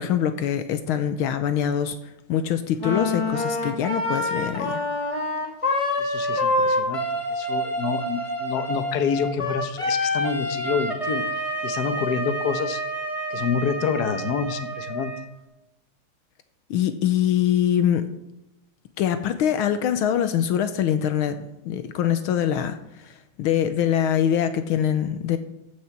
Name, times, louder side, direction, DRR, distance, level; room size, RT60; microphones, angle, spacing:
voice 1, 0.0-2.0 2.3-4.8 16.7-18.1 19.0-25.4, left 9 dB, 80° left, 10 dB, 1.6 m, -24 dB
Wind instrument woodwind instrument, 2.8-15.3, left 1 dB, 15° left, 1.5 m, -27 dB
voice 2, 6.0-7.0 7.3-12.8 13.3-15.1, left 6 dB, 55° left, 9 dB, 1.4 m, -28 dB
14.5 x 6.5 x 5.9 m, 0.91 s
omnidirectional pair, 2.4 m